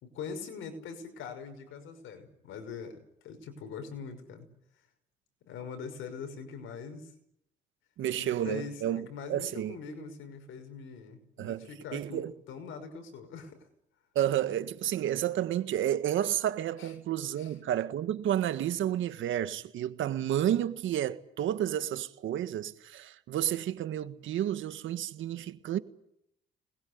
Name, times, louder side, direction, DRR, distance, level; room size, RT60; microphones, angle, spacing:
voice 1, 0.0-4.5 5.4-7.1 8.2-13.6 16.8-16.9 17.4-17.5, left 6 dB, 85° left, 5.7 m, -42 dB
voice 2, 8.0-9.8 11.4-12.3 14.2-25.8, right 11 dB, 75° right, 1.7 m, -31 dB
24.5 x 21.0 x 9.6 m
cardioid pair, 90°, 20 cm